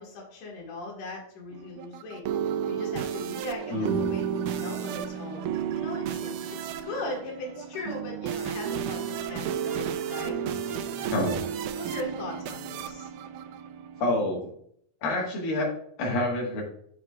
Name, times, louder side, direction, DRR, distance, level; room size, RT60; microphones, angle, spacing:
voice 1, 0.0-2.2 2.7-6.3 6.6-11.2 11.7-13.1, left 3 dB, 65° left, -1 dB, 3.4 m, -39 dB
sound 1, 1.5-14.2, right 8 dB, 80° right, 2.0 m, -32 dB
voice 2, 3.7-4.1 11.1-11.4 14.0-14.4 15.0-16.6, left 1 dB, 80° left, -3 dB, 3.4 m, -27 dB
8.5 x 7.4 x 2.4 m, 0.65 s
omnidirectional pair, 4.0 m